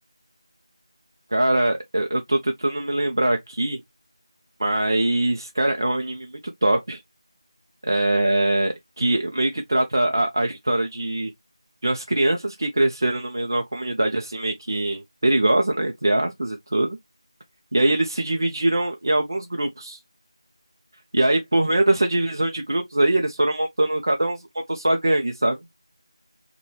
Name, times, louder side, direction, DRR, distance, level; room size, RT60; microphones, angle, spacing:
voice 1, 1.3-3.8 4.6-6.3 6.6-7.0 7.8-11.3 11.8-17.0 17.7-20.0 21.1-25.6, right 1 dB, 35° right, 0.4 m, -22 dB
4.2 x 2.2 x 3.2 m
figure-of-eight pair, 175°, 3 cm